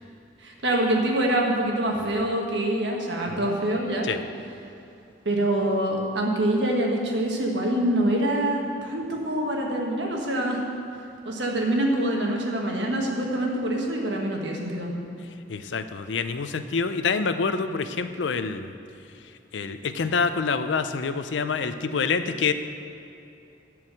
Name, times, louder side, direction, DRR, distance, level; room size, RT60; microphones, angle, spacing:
voice 1, 0.4-4.1 5.2-10.6 11.2-14.9, right 1 dB, 75° right, 0 dB, 1.5 m, -25 dB
voice 2, 15.5-18.7 19.5-22.5, left 5 dB, 80° left, 10 dB, 0.5 m, -26 dB
10.5 x 4.8 x 7.6 m, 2.7 s
head